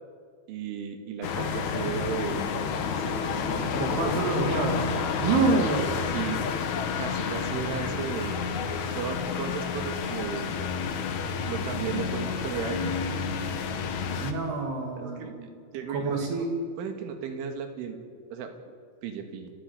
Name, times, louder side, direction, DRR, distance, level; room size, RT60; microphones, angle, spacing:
voice 1, 0.5-2.6 3.0-4.4 6.1-6.4 7.0-8.4 9.0-10.7 11.5-13.0 15.0-15.4 15.7-16.5 16.8-18.0 18.3-18.7 19.0-19.5, right 7 dB, 85° right, 6 dB, 4.6 m, -35 dB
sound 1, 1.2-14.3, left 6 dB, 60° left, 2.0 m, -30 dB
voice 2, 3.7-4.9 5.2-6.0 14.2-15.5 15.9-16.5, right 3 dB, 60° right, 2 dB, 4.5 m, -27 dB
29.5 x 14.0 x 9.6 m, 2.1 s
omnidirectional pair, 5.4 m